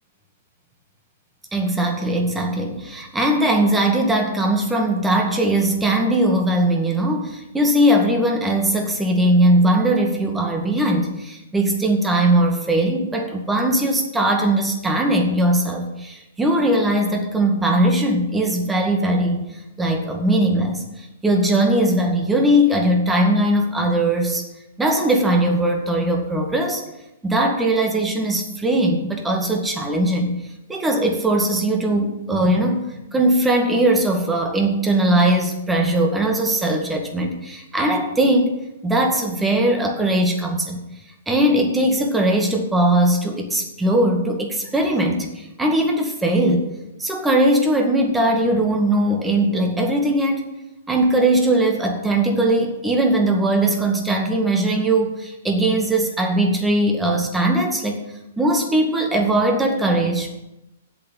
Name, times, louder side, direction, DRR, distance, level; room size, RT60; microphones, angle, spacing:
voice 1, 1.5-19.4 19.8-24.4 24.8-26.8 27.2-30.4 30.7-32.9 33.1-40.8 41.3-46.7 47.0-50.4 50.9-58.0 58.4-60.4, right 1 dB, 10° right, 2 dB, 2.1 m, -20 dB
8.3 x 7.7 x 8.9 m, 0.92 s
figure-of-eight pair, 110°, 0 cm